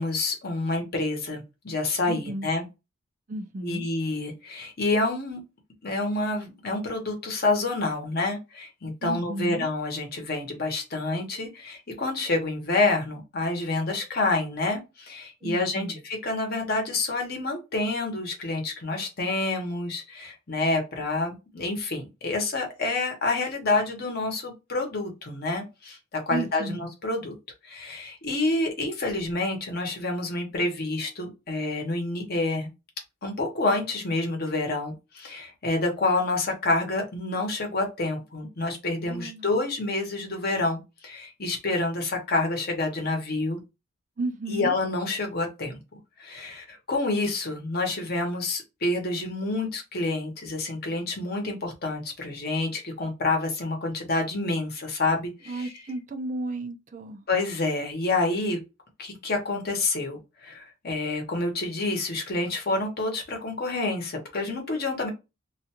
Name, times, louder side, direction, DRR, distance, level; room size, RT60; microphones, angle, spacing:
voice 1, 0.0-2.6 3.6-5.4 5.8-27.3 27.6-32.7 33.2-43.6 44.5-45.8 46.2-55.7 57.3-58.6 59.0-65.1, left 2 dB, 50° left, 0.9 m, -28 dB
voice 2, 2.1-2.5 3.3-3.9 9.0-9.7 15.4-16.0 26.3-26.8 39.0-39.5 44.2-44.7 55.5-57.2, right 2 dB, 35° right, 0.4 m, -33 dB
2.4 x 2.3 x 2.8 m
head